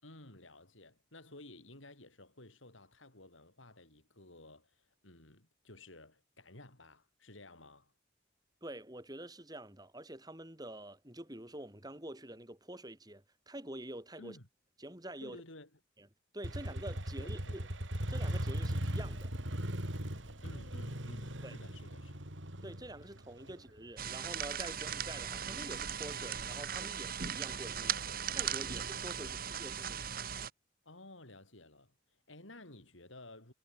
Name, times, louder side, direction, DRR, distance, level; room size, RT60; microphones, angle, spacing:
voice 1, 0.0-7.9 14.2-14.5 15.2-15.8 17.2-17.6 20.4-22.2 23.5-23.6 27.8-28.2 29.0-29.5 30.8-33.5, left 2 dB, 85° left, 7.2 m, -54 dB
voice 2, 8.6-14.4 14.8-15.4 16.0-16.1 16.3-17.7 18.1-19.3 21.4-21.6 22.6-28.0 28.4-30.1, right 1 dB, 20° right, 4.8 m, -47 dB
Motorcycle, 16.4-24.1, right 1 dB, 75° right, 4.5 m, -38 dB
sound 1, 24.0-30.5, right 8 dB, 50° right, 1.6 m, -38 dB
head